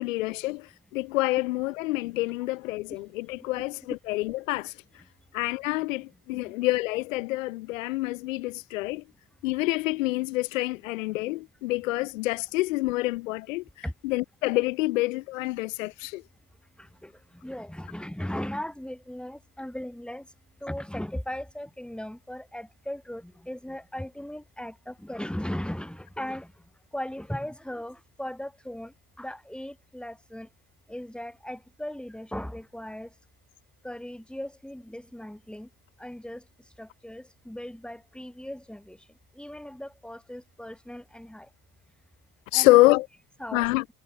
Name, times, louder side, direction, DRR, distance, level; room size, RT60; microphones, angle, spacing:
voice 1, 0.0-4.7 5.3-9.0 9.4-13.6 14.0-16.2 42.5-43.1 43.5-43.8, left 20 dB, 80° left, 3.3 m, -26 dB
voice 2, 16.8-17.1 17.4-20.3 20.6-26.5 26.9-30.5 30.9-33.1 33.8-35.7 36.0-36.4 36.8-39.0 39.4-41.5 42.5-42.8 43.4-43.7, left 1 dB, ahead, 4.8 m, -37 dB
hypercardioid pair, 85°, 38 cm